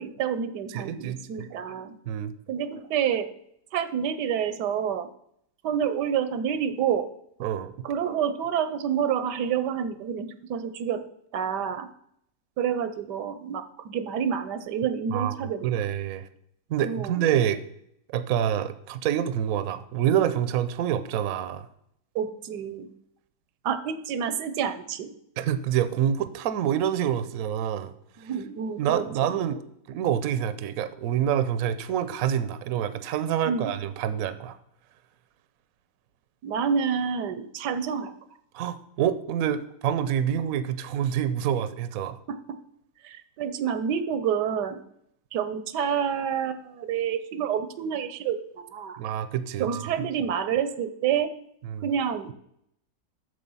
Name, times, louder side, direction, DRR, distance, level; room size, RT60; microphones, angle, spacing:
voice 1, 0.0-2.0 2.5-3.3 3.7-5.1 5.6-7.1 7.8-11.0 11.3-11.9 12.6-15.7 16.8-17.2 22.1-22.9 23.6-25.1 28.2-29.3 33.4-33.7 36.4-38.1 42.3-42.4 43.0-44.8 45.3-49.0 49.6-51.3 51.8-52.3, right 8 dB, 80° right, 12 dB, 1.3 m, -28 dB
voice 2, 0.7-1.5 2.1-2.3 7.4-7.7 15.1-15.4 15.6-16.3 16.7-17.6 18.1-21.7 25.4-27.9 28.2-28.3 28.8-29.6 29.9-34.6 38.5-42.2 49.0-49.7 51.6-51.9, right 10 dB, 65° right, 12 dB, 1.0 m, -27 dB
8.6 x 6.7 x 5.4 m, 0.71 s
omnidirectional pair, 1.8 m